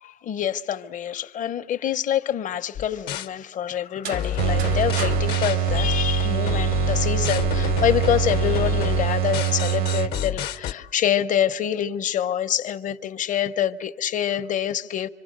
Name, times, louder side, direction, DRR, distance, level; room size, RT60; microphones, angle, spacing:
voice 1, 0.0-15.1, left 10 dB, 50° left, 0.7 m, -26 dB
sound 1, 2.7-3.3 4.1-10.7, left 10 dB, 75° left, 0.9 m, -28 dB
sound 2, 3.9-6.7, right 6 dB, 90° right, 1.4 m, -38 dB
sound 3, 4.4-10.5, right 11 dB, 60° right, 0.7 m, -24 dB
26.0 x 25.5 x 6.5 m
cardioid pair, 110°, 17 cm